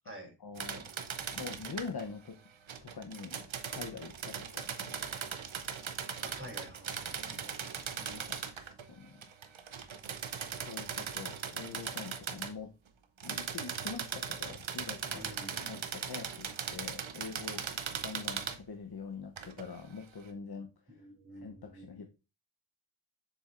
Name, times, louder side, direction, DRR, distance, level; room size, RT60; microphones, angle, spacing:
voice 1, 0.4-0.9 1.3-2.4 2.8-5.0 7.3-7.4 8.0-8.4 8.9-9.2 10.5-12.7 13.2-15.4 15.6-17.6 17.9-20.7 21.4-22.0, left 5 dB, 55° left, 4 dB, 0.9 m, -44 dB
sound 1, 0.6-2.1 2.7-8.9 9.2-12.5 13.2-18.6 19.4-19.7, right 7 dB, 85° right, 0.8 m, -39 dB
voice 2, 6.2-7.8 8.4-8.7 15.1-15.7 20.9-22.1, equal, 30° right, 1 dB, 3.1 m, -49 dB
7.2 x 7.1 x 2.5 m, 0.29 s
wide cardioid pair, 85°, 45 cm